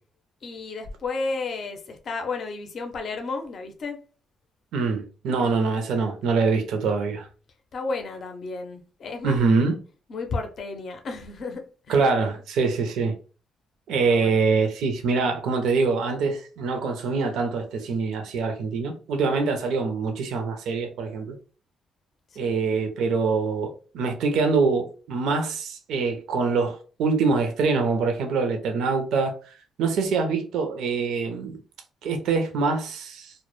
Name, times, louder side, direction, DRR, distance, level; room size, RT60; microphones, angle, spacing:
voice 1, 0.4-4.0 7.7-9.4 10.1-12.0 14.1-14.4 22.3-22.7, left 3 dB, 55° left, 0.5 m, -33 dB
voice 2, 4.7-7.3 9.2-9.8 11.9-13.1 13.9-21.4 22.4-31.6 32.0-33.3, right 4 dB, 80° right, 0.4 m, -24 dB
2.0 x 2.0 x 3.0 m
cardioid pair, 90°, 0 cm